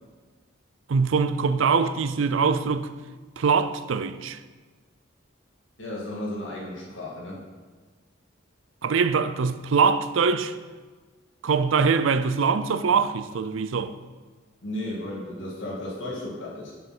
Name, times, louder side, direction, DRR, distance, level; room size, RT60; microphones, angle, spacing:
voice 1, 0.9-2.9 3.4-4.4 8.8-10.5 11.4-13.9, right 5 dB, 75° right, 0.5 m, -23 dB
voice 2, 5.8-7.4 14.6-16.7, left 1 dB, 70° left, 2.1 m, -34 dB
7.7 x 5.5 x 6.1 m
head